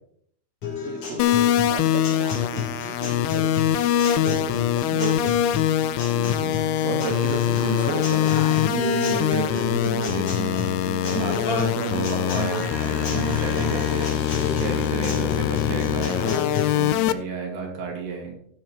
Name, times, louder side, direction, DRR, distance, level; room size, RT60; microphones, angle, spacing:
Guitar, 0.6-16.6, left 4 dB, 40° left, 3.7 m, -31 dB
voice 1, 0.8-1.3 1.7-3.7 4.8-5.9, right 11 dB, 80° right, 8 dB, 2.7 m, -39 dB
sound 1, 1.2-17.1, left 12 dB, 85° left, 2.4 m, -23 dB
voice 2, 4.2-5.1 6.1-10.6 11.0-18.3, right 5 dB, 60° right, 0 dB, 4.2 m, -32 dB
sound 2, 6.8-16.8, left 4 dB, 60° left, 6.1 m, -38 dB
16.0 x 6.5 x 4.4 m, 0.65 s
omnidirectional pair, 5.1 m